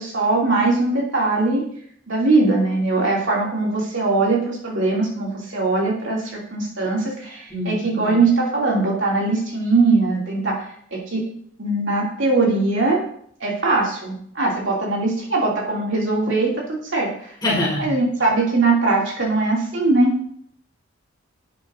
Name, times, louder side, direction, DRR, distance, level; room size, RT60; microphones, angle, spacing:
voice 1, 0.0-1.6 2.1-11.2 11.6-13.0 13.4-16.5 16.9-17.1 17.8-20.1, right 3 dB, 60° right, -3 dB, 2.8 m, -21 dB
voice 2, 7.5-8.2 17.4-17.9, left 1 dB, 20° left, -7 dB, 4.4 m, -24 dB
11.0 x 8.8 x 2.7 m, 0.63 s
head